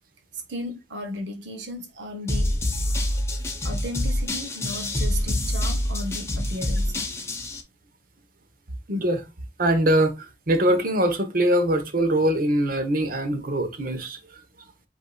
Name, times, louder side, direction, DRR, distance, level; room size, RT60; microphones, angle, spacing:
voice 1, 0.3-2.5 2.9-3.1 3.6-7.0, equal, 85° right, 1.0 m, -35 dB
sound 1, 2.3-7.6, left 1 dB, 15° left, 0.8 m, -26 dB
voice 2, 8.9-9.2 9.6-14.2, right 1 dB, 50° right, 1.0 m, -22 dB
8.2 x 2.7 x 2.3 m
head